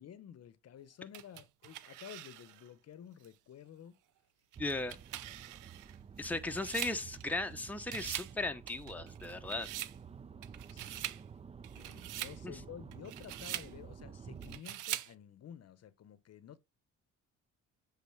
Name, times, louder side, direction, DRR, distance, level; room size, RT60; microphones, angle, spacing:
voice 1, 0.0-4.0 6.3-6.5 10.7-11.2 11.7-16.6, left 9 dB, 55° left, 0.8 m, -52 dB
sound 1, 1.1-2.7 3.2-3.3 4.5-7.5 7.8-8.4 8.7-10.0 10.4-11.2 11.6-12.4 12.9-13.7 14.4-15.1, right 14 dB, 90° right, 0.6 m, -43 dB
sound 2, 4.5-14.6, right 6 dB, 20° right, 0.4 m, -51 dB
voice 2, 4.6-5.0 6.2-9.7 12.4-12.6, left 2 dB, 5° left, 0.9 m, -37 dB
8.3 x 4.0 x 4.7 m
cardioid pair, 90°, 30 cm